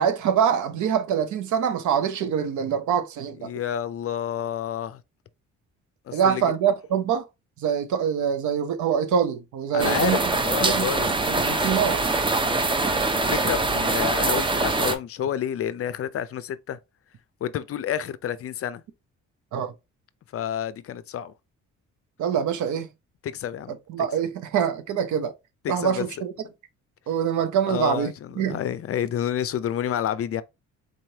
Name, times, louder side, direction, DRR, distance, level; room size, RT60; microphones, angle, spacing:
voice 1, 0.0-3.5 6.1-7.3 7.6-10.3 10.6-10.9 11.3-12.1 19.5-19.7 22.2-22.9 23.7-25.3 25.7-26.3 27.1-28.6, right 8 dB, 75° right, 0.7 m, -25 dB
voice 2, 3.4-5.0 6.1-6.4 9.7-11.1 11.5-11.7 13.3-16.8 17.4-18.8 20.3-21.3 23.2-23.7 25.6-26.1 27.7-28.1 28.4-30.4, left 9 dB, 50° left, 0.4 m, -29 dB
sound 1, 9.8-15.0, right 2 dB, 15° right, 0.6 m, -23 dB
4.1 x 3.1 x 2.7 m
cardioid pair, 90°, 30 cm